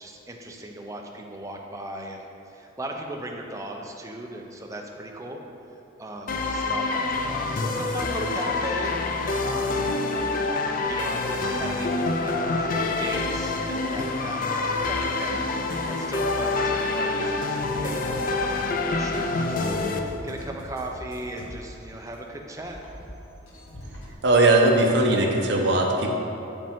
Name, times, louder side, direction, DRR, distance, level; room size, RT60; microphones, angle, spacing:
voice 1, 0.0-5.4 5.7-9.9 10.9-22.8, right 1 dB, 15° right, 1 dB, 0.5 m, -37 dB
sound 1, 6.3-20.0, left 3 dB, 45° left, 0.4 m, -26 dB
sound 2, 17.6-22.2 22.5-24.1, equal, 90° left, 1.2 m, -43 dB
voice 2, 24.2-26.1, right 2 dB, 60° right, 1 dB, 0.8 m, -19 dB
8.0 x 5.1 x 3.6 m, 2.9 s
head